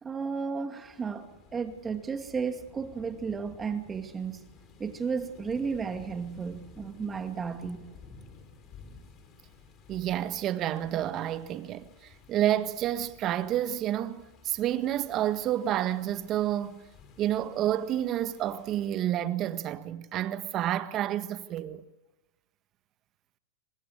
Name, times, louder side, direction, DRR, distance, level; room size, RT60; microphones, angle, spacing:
voice 1, 0.0-4.5 4.8-7.8, right 5 dB, 20° right, 2.2 m, -33 dB
rain far with storm, 0.8-18.9, left 5 dB, 35° left, 4.3 m, -54 dB
voice 2, 9.9-16.8 17.2-21.8, right 12 dB, 40° right, 1.6 m, -29 dB
24.5 x 20.5 x 6.7 m
hypercardioid pair, 110°, 0 cm